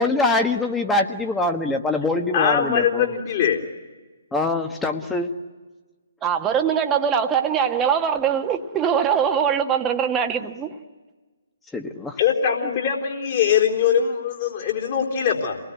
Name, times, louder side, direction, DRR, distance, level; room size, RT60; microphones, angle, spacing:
voice 1, 0.0-3.1 4.3-5.3 11.7-12.2, left 2 dB, 10° left, 4 dB, 1.5 m, -23 dB
voice 2, 2.3-3.6 12.2-15.6, left 8 dB, 40° left, 1 dB, 3.9 m, -22 dB
voice 3, 6.2-10.7, right 7 dB, 15° right, 5 dB, 1.5 m, -22 dB
28.5 x 20.0 x 9.5 m, 1.3 s
figure-of-eight pair, 135°, 0 cm